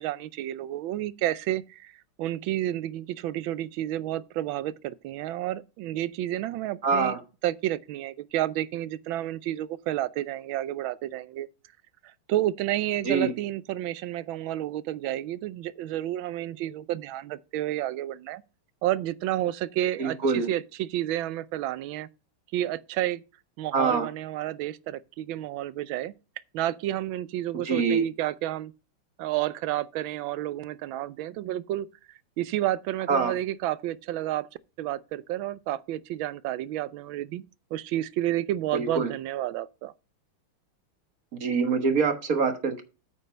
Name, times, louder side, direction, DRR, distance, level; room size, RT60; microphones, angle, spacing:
voice 1, 0.0-7.2 7.4-11.5 12.3-18.4 18.8-22.1 22.5-23.2 23.6-26.1 26.5-28.7 29.2-31.9 32.4-34.5 34.8-37.4 37.7-39.9, right 13 dB, 75° right, 1.3 m, -30 dB
voice 2, 6.8-7.2 13.0-13.3 20.0-20.5 23.7-24.1 27.6-28.0 33.1-33.3 38.7-39.1 41.4-42.8, right 5 dB, 45° right, 1.6 m, -24 dB
9.2 x 5.6 x 5.2 m
omnidirectional pair, 2.3 m